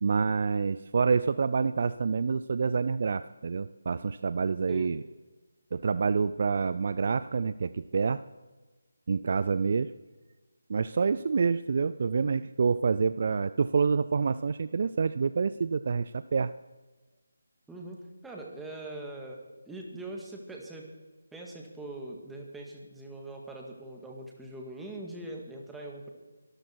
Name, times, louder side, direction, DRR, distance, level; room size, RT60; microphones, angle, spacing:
voice 1, 0.0-5.0 5.7-8.2 9.1-9.9 10.7-16.5, right 5 dB, 45° right, 15 dB, 0.4 m, -27 dB
voice 2, 17.7-19.4 19.7-20.8 21.3-26.1, right 2 dB, 5° right, -1 dB, 2.0 m, -42 dB
23.5 x 13.0 x 4.7 m, 1.3 s
figure-of-eight pair, 155°, 0 cm